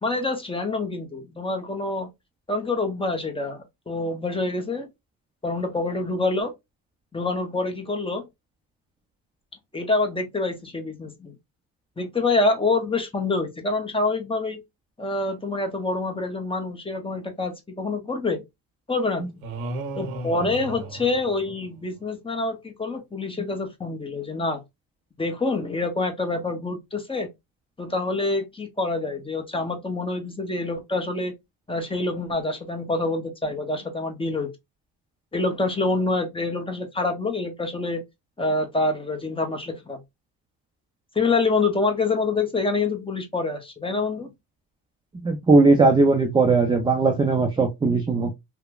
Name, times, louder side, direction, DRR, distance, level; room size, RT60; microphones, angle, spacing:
voice 1, 0.0-2.1 2.5-4.9 5.4-6.5 7.1-8.2 9.7-11.4 12.0-14.6 15.0-18.4 18.9-19.2 20.0-24.6 25.2-27.3 27.8-31.3 31.7-34.5 35.3-38.0 38.4-40.0 41.1-44.3, left 3 dB, 10° left, 0.7 m, -26 dB
sound 1, 19.4-21.9, right 2 dB, 90° right, 0.8 m, -35 dB
voice 2, 45.2-48.3, right 3 dB, 10° right, 0.4 m, -18 dB
3.0 x 2.1 x 2.2 m
supercardioid pair, 80°, 44 cm